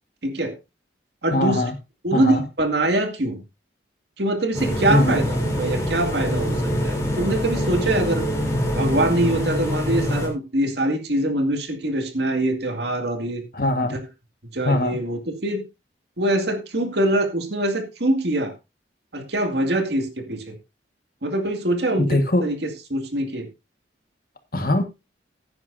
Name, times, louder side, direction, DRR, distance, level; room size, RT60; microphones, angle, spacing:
voice 1, 0.2-0.6 1.2-1.6 2.0-3.4 4.2-8.2 8.7-13.4 13.9-14.0 14.5-15.6 16.2-18.5 19.1-20.6 21.2-23.5, right 1 dB, 65° right, 2.3 m, -24 dB
voice 2, 1.3-1.7 2.1-2.4 4.9-5.2 13.5-14.0 14.6-15.0 22.0-22.5 24.5-24.8, left 1 dB, 50° left, 1.6 m, -21 dB
sound 1, 4.5-10.3, equal, 20° left, 3.4 m, -24 dB
16.0 x 9.5 x 2.7 m
head